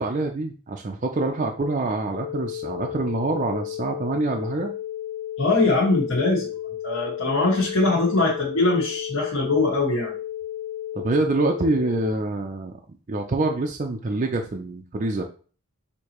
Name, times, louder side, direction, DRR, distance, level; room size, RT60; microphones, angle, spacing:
voice 1, 0.0-4.7 10.9-12.8 13.1-15.2, right 2 dB, 35° right, 2 dB, 0.4 m, -26 dB
sound 1, 2.1-12.1, left 12 dB, 90° left, 0.5 m, -33 dB
voice 2, 5.4-6.5 6.8-10.1, left 2 dB, 65° left, -5 dB, 1.5 m, -22 dB
6.4 x 2.8 x 2.9 m, 0.39 s
head